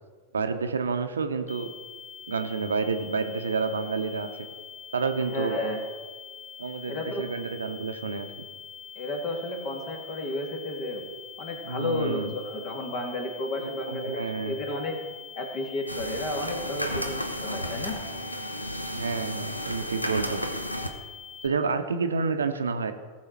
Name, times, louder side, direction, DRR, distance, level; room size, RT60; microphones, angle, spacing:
voice 1, 0.3-1.7 2.3-4.3 4.9-5.6 6.6-8.3 11.6-12.3 13.5-14.6 18.9-20.4 21.4-22.9, right 4 dB, 70° right, 7 dB, 0.8 m, -29 dB
sound 1, 1.5-21.5, left 7 dB, 5° left, 0.8 m, -44 dB
voice 2, 5.3-5.8 6.9-7.3 9.0-11.1 11.4-15.0 15.4-18.0, left 1 dB, 40° left, 3 dB, 2.3 m, -32 dB
sound 2, 15.9-20.9, equal, 90° left, 0.9 m, -33 dB
18.5 x 6.5 x 4.4 m, 1.4 s
figure-of-eight pair, 90°, 0 cm